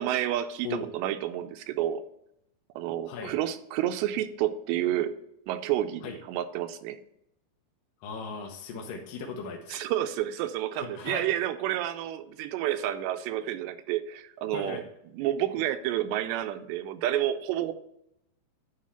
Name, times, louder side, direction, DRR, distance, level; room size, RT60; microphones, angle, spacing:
voice 1, 0.0-2.0 2.8-5.1 5.5-7.0 9.7-14.8 15.1-17.7, right 12 dB, 85° right, 9 dB, 2.9 m, -30 dB
voice 2, 8.0-9.9 10.8-11.2 14.5-14.8, left 5 dB, 70° left, 0 dB, 2.3 m, -37 dB
11.5 x 3.8 x 5.6 m, 0.78 s
omnidirectional pair, 4.9 m